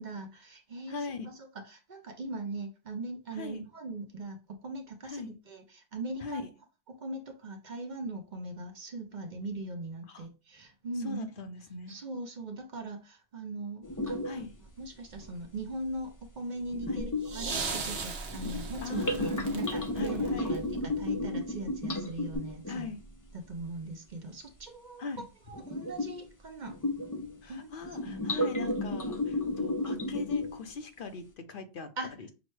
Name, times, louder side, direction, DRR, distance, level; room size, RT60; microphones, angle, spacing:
voice 1, 0.0-4.4 4.6-6.5 6.9-11.3 11.9-14.5 14.8-22.9 23.3-26.8 27.5-28.3 32.0-32.1, right 2 dB, 50° right, 0.8 m, -40 dB
voice 2, 0.9-1.3 3.3-3.7 5.0-5.3 6.2-6.4 10.1-10.2 11.0-12.0 14.2-14.5 16.9-17.1 18.8-19.3 20.0-20.6 22.7-23.0 25.0-25.2 27.4-31.9, left 4 dB, 60° left, 0.8 m, -40 dB
sound 1, 13.8-14.5 15.1-15.3 16.7-23.0 25.5-26.3 26.6-27.4 27.8-30.7, left 1 dB, 25° left, 0.5 m, -33 dB
sound 2, 17.0-21.2 22.3-22.4, right 4 dB, 75° right, 1.1 m, -39 dB
6.0 x 2.1 x 3.1 m
omnidirectional pair, 1.0 m